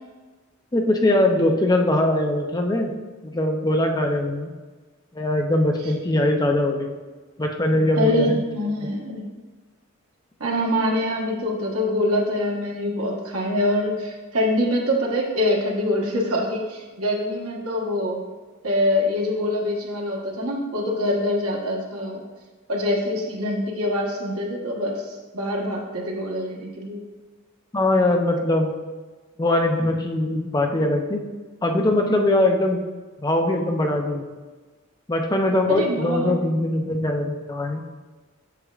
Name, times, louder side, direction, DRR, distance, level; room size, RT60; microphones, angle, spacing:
voice 1, 0.7-2.9 3.2-4.5 5.1-6.9 7.4-8.4 27.7-28.7 29.4-31.2 31.6-32.8 33.2-34.3 35.1-37.8, left 1 dB, 20° left, 2 dB, 0.5 m, -21 dB
voice 2, 7.9-9.2 10.4-18.2 18.6-22.2 22.7-27.0 35.8-36.4, left 1 dB, 85° right, -2 dB, 1.3 m, -24 dB
8.1 x 6.2 x 2.4 m, 1.3 s
head